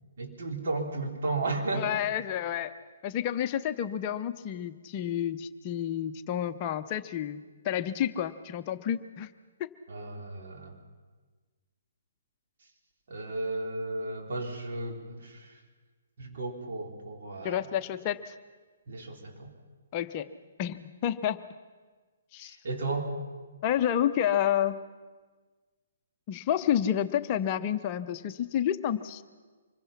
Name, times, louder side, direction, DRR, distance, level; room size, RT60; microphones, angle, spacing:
voice 1, 0.2-1.9 9.9-10.7 13.1-15.6 16.2-17.7 18.9-19.5 22.4-23.1, right 2 dB, 55° right, 1 dB, 3.9 m, -34 dB
voice 2, 1.7-2.7 3.0-9.3 9.6-9.7 17.4-18.3 19.9-20.3 20.6-21.4 22.3-22.6 23.6-24.8 26.3-29.2, left 10 dB, 30° left, 9 dB, 0.7 m, -30 dB
25.0 x 22.0 x 5.8 m, 1.4 s
figure-of-eight pair, 125°, 0 cm